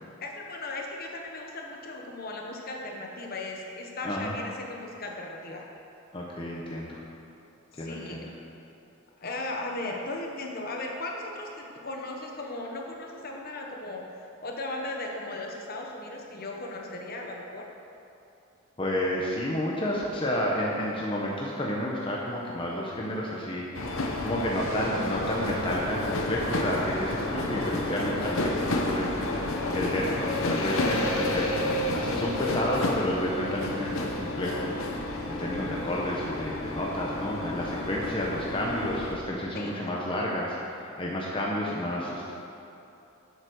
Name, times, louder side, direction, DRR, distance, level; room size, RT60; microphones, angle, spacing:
voice 1, 0.2-5.6 7.7-8.3 9.2-17.7 29.7-30.0 39.5-39.8, left 2 dB, 45° left, 0 dB, 1.1 m, -37 dB
voice 2, 4.0-4.3 6.1-7.0 7.8-8.3 18.8-29.2 29.7-34.8 35.3-42.3, left 1 dB, 25° left, -4 dB, 0.9 m, -31 dB
sound 1, 23.7-39.2, left 2 dB, 80° left, 1.0 m, -30 dB
8.0 x 7.4 x 6.3 m, 2.7 s
head